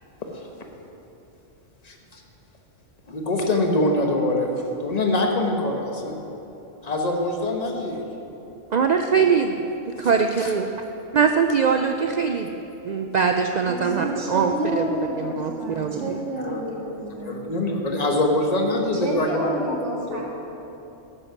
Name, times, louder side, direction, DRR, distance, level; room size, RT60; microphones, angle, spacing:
voice 1, 1.8-2.2 3.1-6.2 6.8-8.0 10.4-10.5 16.4-16.6 17.2-19.8 20.1-20.2, left 1 dB, 35° left, 2 dB, 1.1 m, -24 dB
voice 2, 8.7-10.7 11.1-12.6 12.8-14.9 15.2-16.2, right 6 dB, 85° right, 5 dB, 0.3 m, -22 dB
voice 3, 13.7-17.3 19.0-20.2, right 1 dB, 70° right, -3 dB, 2.1 m, -29 dB
9.5 x 8.0 x 5.9 m, 3.0 s
omnidirectional pair, 1.3 m